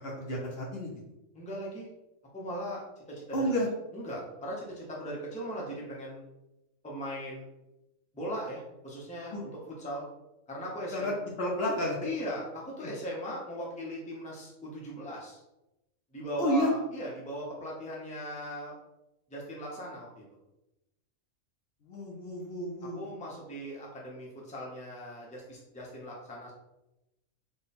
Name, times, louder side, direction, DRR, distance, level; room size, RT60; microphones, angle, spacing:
voice 1, 0.0-0.9 3.3-3.7 9.3-9.4 10.9-12.0 16.4-16.7 21.8-23.1, equal, 55° left, -2 dB, 0.9 m, -31 dB
voice 2, 1.3-1.9 2.3-2.8 3.1-3.5 3.9-6.2 6.8-7.5 8.1-9.5 9.8-10.1 10.5-11.1 12.0-15.4 16.1-18.8 19.3-20.2 22.8-26.5, equal, 5° left, -4 dB, 0.7 m, -39 dB
3.7 x 2.3 x 4.1 m, 0.92 s
omnidirectional pair, 1.3 m